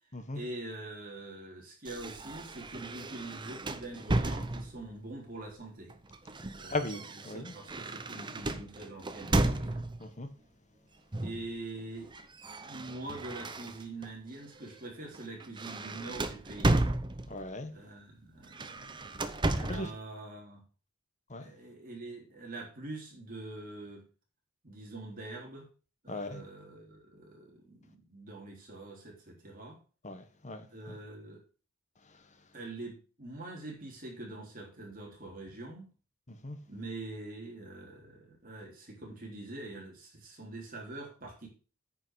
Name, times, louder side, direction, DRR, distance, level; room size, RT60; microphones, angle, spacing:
voice 1, 0.3-5.9 6.6-9.9 11.2-12.1 12.6-16.9 17.7-19.2 19.5-20.6 21.4-24.0 24.6-25.7 26.0-29.8 30.7-31.4 32.5-35.9 36.7-41.5, right 2 dB, 40° right, 3.6 m, -44 dB
sound 1, 1.8-4.9 5.9-10.1 11.1-11.5 11.8-14.1 14.6-14.8 15.1-17.5 18.4-19.9, right 2 dB, 20° right, 0.7 m, -34 dB
voice 2, 6.7-7.5 10.0-10.3 17.3-17.7 19.6-19.9 21.3-21.5 26.1-26.4 30.0-30.6 36.3-36.6, left 2 dB, 35° left, 1.3 m, -38 dB
9.6 x 5.5 x 6.4 m
head